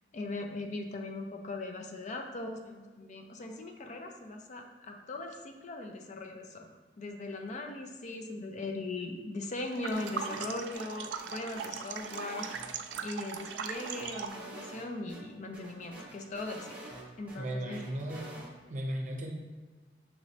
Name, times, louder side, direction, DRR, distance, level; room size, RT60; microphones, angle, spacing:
voice 1, 0.1-6.7 7.0-16.9 17.2-17.8, left 2 dB, 40° left, 3 dB, 0.4 m, -39 dB
sound 1, 9.7-14.5, right 7 dB, 90° right, 0.3 m, -40 dB
sound 2, 9.9-10.8 11.2-13.0 13.3-14.8 15.1-15.2 15.5-17.4 17.7-18.5, right 1 dB, 10° right, 0.9 m, -47 dB
voice 2, 17.4-18.3 18.7-19.3, right 1 dB, 45° right, 1 dB, 0.6 m, -36 dB
5.9 x 3.1 x 2.6 m, 1.4 s
head